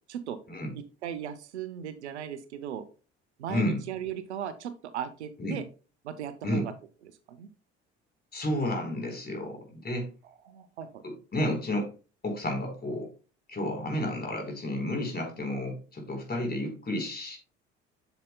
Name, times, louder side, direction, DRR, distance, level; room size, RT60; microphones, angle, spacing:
voice 1, 0.7-2.8 3.4-5.7 6.0-6.7 7.3-7.5 10.4-11.0, right 9 dB, 85° right, 12 dB, 0.7 m, -37 dB
voice 2, 3.5-3.8 5.4-5.6 6.4-6.7 8.3-10.1 11.0-11.9 12.2-13.1 13.5-17.4, left 1 dB, 30° left, 3 dB, 3.9 m, -31 dB
8.3 x 6.7 x 2.2 m, 0.35 s
hypercardioid pair, 55°, 33 cm